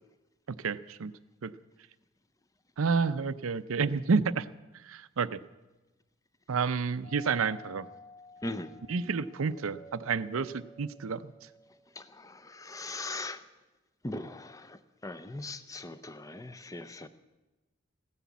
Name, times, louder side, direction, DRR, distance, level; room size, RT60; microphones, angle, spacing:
voice 1, 0.5-1.1 1.4-1.5 2.8-4.5 4.8-5.4 6.5-7.9 8.9-11.3, right 5 dB, 80° right, 15 dB, 0.6 m, -30 dB
Doorbell, 7.0-11.9, left 1 dB, 65° left, 2.5 m, -52 dB
voice 2, 8.4-8.7 12.0-13.4 14.0-17.1, left 2 dB, 15° left, 12 dB, 0.6 m, -40 dB
15.0 x 10.0 x 8.3 m, 1.1 s
head